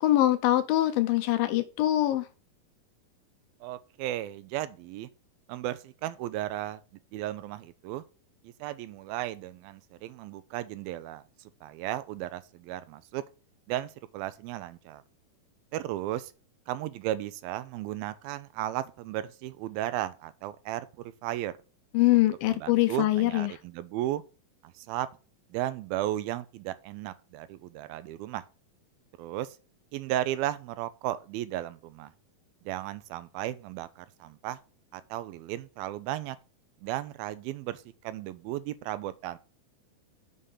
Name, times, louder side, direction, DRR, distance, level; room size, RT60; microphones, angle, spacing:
voice 1, 0.0-2.3 21.9-23.5, left 15 dB, 80° left, 2.4 m, -23 dB
voice 2, 3.6-5.1 5.5-6.8 7.1-8.0 8.4-11.2 11.6-13.2 13.7-15.0 15.7-16.3 16.7-20.9 21.2-21.5 22.1-22.2 22.5-24.2 24.6-25.1 25.5-28.4 29.2-29.6 29.9-32.1 32.7-34.6 34.9-36.4 36.8-39.4, right 13 dB, 85° right, 2.4 m, -35 dB
6.8 x 5.6 x 6.5 m
omnidirectional pair, 4.3 m